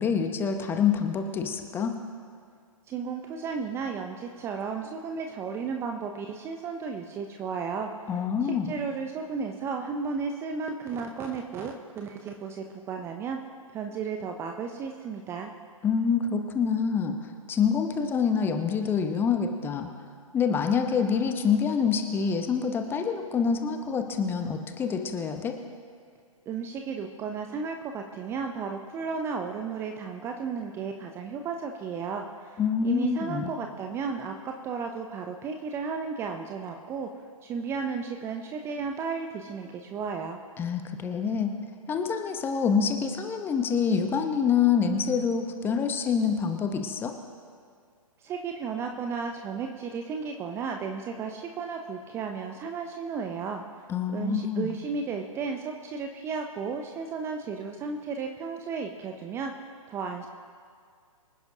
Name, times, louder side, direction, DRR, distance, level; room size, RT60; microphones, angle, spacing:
voice 1, 0.0-1.9 8.1-8.8 15.8-17.2 17.5-19.9 20.3-25.6 32.6-33.5 40.6-41.5 41.9-47.1 53.9-54.8, left 6 dB, 10° left, 6 dB, 0.8 m, -26 dB
voice 2, 2.9-8.1 8.4-13.4 13.7-15.5 26.5-37.1 37.4-40.4 48.2-53.6 54.1-59.5 59.9-60.3, right 5 dB, 15° right, 4 dB, 0.6 m, -34 dB
25.0 x 10.5 x 2.7 m, 2.1 s
figure-of-eight pair, 125°, 18 cm